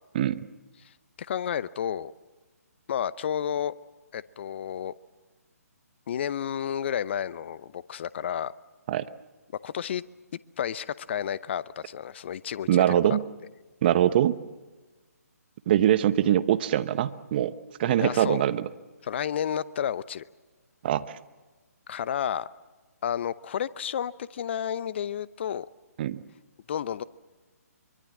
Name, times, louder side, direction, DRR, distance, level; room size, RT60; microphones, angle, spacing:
voice 1, 1.2-2.1 2.9-3.7 4.1-4.9 6.1-8.5 9.6-10.0 10.6-12.8 17.9-18.4 19.0-20.2 21.9-22.5 23.0-25.7 26.7-27.0, left 9 dB, 45° left, 18 dB, 0.8 m, -31 dB
voice 2, 12.7-13.2 13.8-14.4 15.7-17.5 17.8-18.7 20.8-21.1 26.0-26.2, right 11 dB, 35° right, 13 dB, 1.0 m, -23 dB
24.0 x 23.5 x 7.3 m, 1.3 s
figure-of-eight pair, 140°, 9 cm